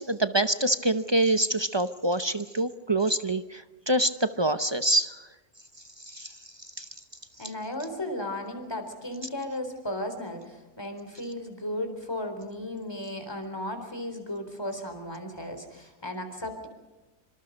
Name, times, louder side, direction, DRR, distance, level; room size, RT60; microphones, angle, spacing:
voice 1, 0.0-5.2 6.0-6.3 6.8-6.9, right 1 dB, 30° right, 11 dB, 0.5 m, -26 dB
voice 2, 7.4-16.7, left 1 dB, 15° left, 6 dB, 3.9 m, -35 dB
26.0 x 26.0 x 5.3 m, 1.1 s
omnidirectional pair, 1.7 m